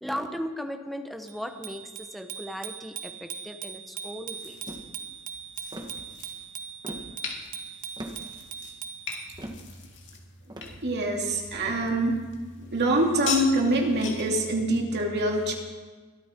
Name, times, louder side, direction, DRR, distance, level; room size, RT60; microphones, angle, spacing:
voice 1, 0.0-4.6, equal, ahead, 5 dB, 1.1 m, -36 dB
Bicycle bell, 1.3-9.4, right 7 dB, 80° right, 1.3 m, -40 dB
sound 1, 4.3-14.4, left 6 dB, 55° left, 2.6 m, -40 dB
sound 2, 4.7-4.9 5.7-6.0 6.8-7.2 8.0-8.2 9.4-9.7 10.5-10.8 11.6-11.8, right 1 dB, 20° right, 1.5 m, -39 dB
voice 2, 10.8-12.2 12.6-15.5, right 1 dB, 50° right, 0 dB, 2.7 m, -25 dB
22.5 x 13.5 x 4.5 m, 1.4 s
head